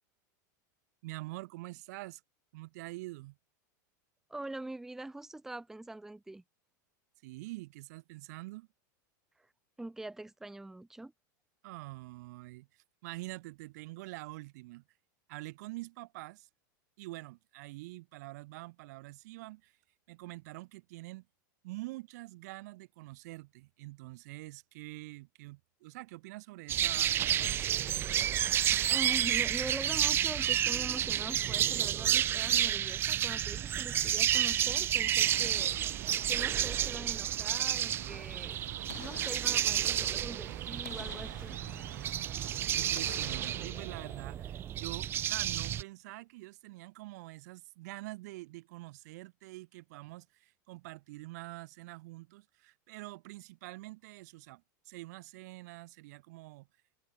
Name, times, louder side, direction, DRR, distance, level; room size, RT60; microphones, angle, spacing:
voice 1, 1.0-2.2 2.5-3.4 7.2-8.7 11.6-14.8 15.3-16.5 17.0-19.8 20.1-21.3 21.6-28.1 42.7-56.7, right 21 dB, 60° right, 1.5 m, -46 dB
voice 2, 4.3-6.4 9.8-11.1 28.9-35.8 36.3-38.6 39.0-41.6, right 2 dB, 5° right, 1.2 m, -43 dB
sound 1, 26.7-45.8, right 11 dB, 20° right, 0.6 m, -31 dB
sound 2, 35.2-43.7, right 14 dB, 80° right, 4.9 m, -49 dB
Boom, 38.9-40.4 40.8-42.5 42.9-45.2 45.5-45.6, left 22 dB, 60° left, 6.3 m, -52 dB
open air
supercardioid pair, 160°, 10 cm